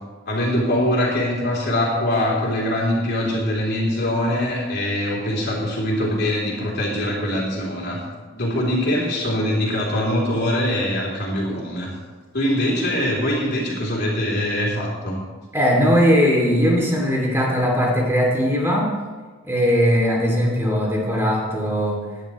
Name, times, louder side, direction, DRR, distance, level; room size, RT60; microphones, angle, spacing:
voice 1, 0.3-8.0 8.3-11.9 12.3-15.2, left 1 dB, 50° left, -4 dB, 3.5 m, -23 dB
voice 2, 15.5-18.9 19.4-22.0, equal, 10° right, -2 dB, 2.7 m, -19 dB
19.0 x 10.5 x 3.2 m, 1.4 s
head